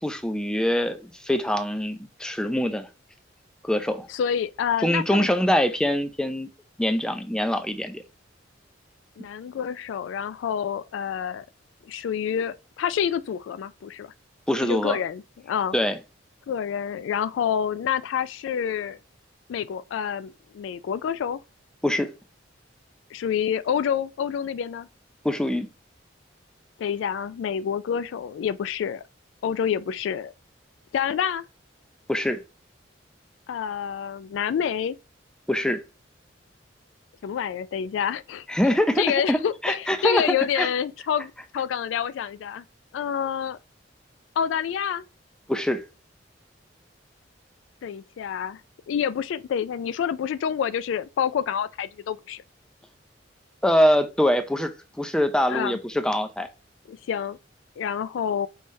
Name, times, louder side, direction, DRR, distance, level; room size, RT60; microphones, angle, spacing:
voice 1, 0.0-2.9 3.6-4.1 4.8-6.5 6.8-8.0 14.5-15.0 15.7-16.0 21.8-22.1 25.2-25.7 32.1-32.4 35.5-35.8 38.5-39.4 39.6-40.7 45.5-45.8 53.6-54.7 55.0-56.5, equal, 5° left, 0.4 m, -24 dB
voice 2, 4.1-5.3 9.2-11.4 11.9-14.1 14.6-15.8 16.5-19.0 19.5-21.4 23.1-24.9 26.8-29.0 29.4-30.3 30.9-31.4 33.5-35.0 37.2-38.5 39.0-42.6 42.9-43.6 44.4-45.1 47.8-48.6 48.9-52.4 55.5-55.8 56.9-57.4 57.8-58.5, left 8 dB, 85° left, 0.3 m, -28 dB
5.4 x 3.2 x 2.7 m
head